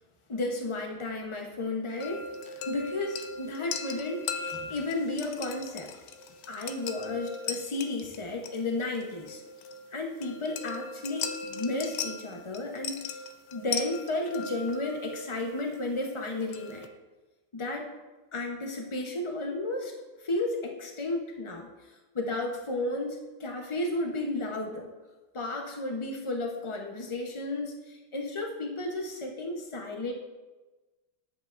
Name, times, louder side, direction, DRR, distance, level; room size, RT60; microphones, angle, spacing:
voice 1, 0.3-5.9 6.5-9.4 9.9-13.2 13.5-16.9 17.5-17.9 18.3-19.9 20.2-21.7 22.1-24.9 25.3-30.1, left 2 dB, 30° left, 2 dB, 0.6 m, -33 dB
sound 1, 2.0-16.9, left 5 dB, 70° left, 1.0 m, -39 dB
10.5 x 8.0 x 2.5 m, 1.2 s
omnidirectional pair, 1.8 m